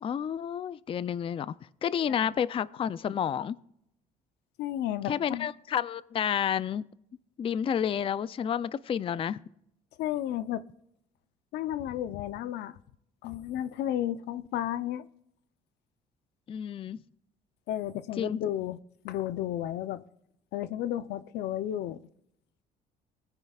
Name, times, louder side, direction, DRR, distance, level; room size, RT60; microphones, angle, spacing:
voice 1, 0.0-1.6 1.8-3.6 5.0-6.8 7.4-9.4 16.5-17.0 18.2-18.4, left 8 dB, 35° left, 0.4 m, -30 dB
voice 2, 4.6-5.5 10.0-10.6 11.5-12.8 13.2-15.1 17.7-18.8 19.0-20.0 20.5-22.0, left 12 dB, 80° left, 0.6 m, -32 dB
21.0 x 9.9 x 2.4 m
cardioid pair, 110°, 17 cm